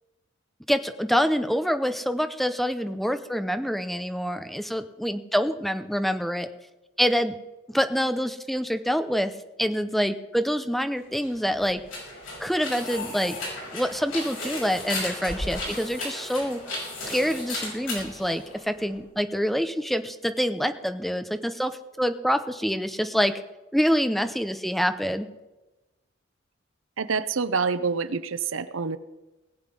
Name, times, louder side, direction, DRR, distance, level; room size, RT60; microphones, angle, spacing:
voice 1, 0.7-6.5 7.0-7.4 7.7-9.3 9.6-11.8 12.4-13.4 13.7-16.6 17.1-23.4 23.7-25.3, equal, ahead, 9 dB, 0.6 m, -26 dB
sound 1, 11.1-19.0, left 2 dB, 75° left, 5.6 m, -35 dB
voice 2, 27.0-29.0, right 5 dB, 80° right, 14 dB, 0.7 m, -27 dB
19.0 x 8.0 x 5.4 m, 1.1 s
head